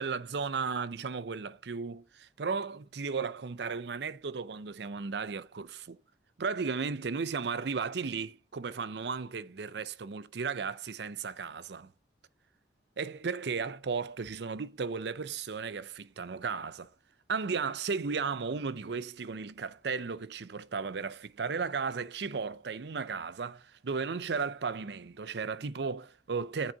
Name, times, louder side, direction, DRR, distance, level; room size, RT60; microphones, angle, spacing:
voice 1, 0.0-6.0 6.4-11.9 13.0-16.9 17.3-26.7, right 5 dB, 70° right, 0.6 m, -35 dB
8.9 x 4.0 x 4.6 m
head